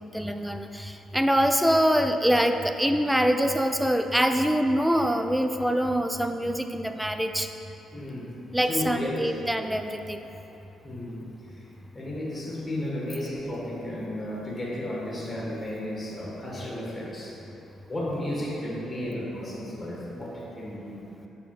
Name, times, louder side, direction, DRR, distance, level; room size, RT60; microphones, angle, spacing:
voice 1, 0.1-7.5 8.5-10.2, equal, 5° right, 7 dB, 0.4 m, -24 dB
voice 2, 7.9-8.3 8.6-9.1 10.8-11.2 11.6-11.7 11.9-17.4 17.9-21.1, left 1 dB, 20° left, -4 dB, 1.4 m, -33 dB
6.9 x 3.6 x 4.7 m, 2.9 s
cardioid pair, 90°, 0 cm